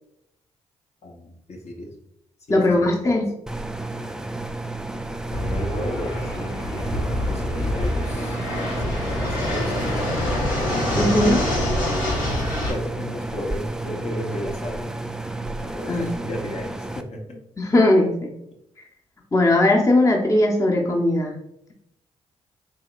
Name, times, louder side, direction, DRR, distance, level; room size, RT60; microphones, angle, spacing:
voice 1, 1.0-1.9 2.5-3.2 5.3-8.4 8.8-10.4 12.7-14.8 15.7-17.4, left 1 dB, 50° left, 0 dB, 0.9 m, -34 dB
voice 2, 2.5-3.3 10.9-11.5 15.9-16.1 17.6-18.3 19.3-21.4, left 1 dB, 20° left, 1 dB, 0.7 m, -19 dB
sound 1, 3.5-17.0, right 2 dB, 5° right, 0.3 m, -31 dB
Fixed-wing aircraft airplane, 5.3-12.7, left 1 dB, 70° left, 1.1 m, -26 dB
4.9 x 2.9 x 2.4 m, 0.79 s
hypercardioid pair, 40°, 14 cm